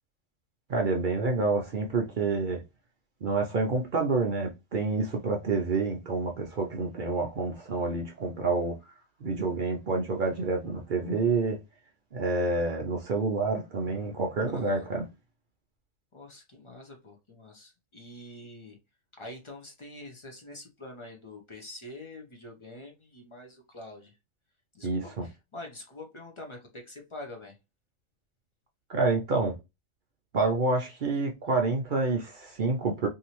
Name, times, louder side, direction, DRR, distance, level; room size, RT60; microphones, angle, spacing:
voice 1, 0.7-2.6 3.2-8.8 9.2-11.6 12.1-15.0 24.8-25.2 28.9-29.5 30.3-33.1, right 3 dB, 60° right, 0.5 m, -28 dB
voice 2, 14.5-14.9 16.1-18.8 19.2-24.2 24.7-27.6, left 1 dB, 35° left, 0.5 m, -45 dB
2.7 x 2.6 x 2.9 m
omnidirectional pair, 1.4 m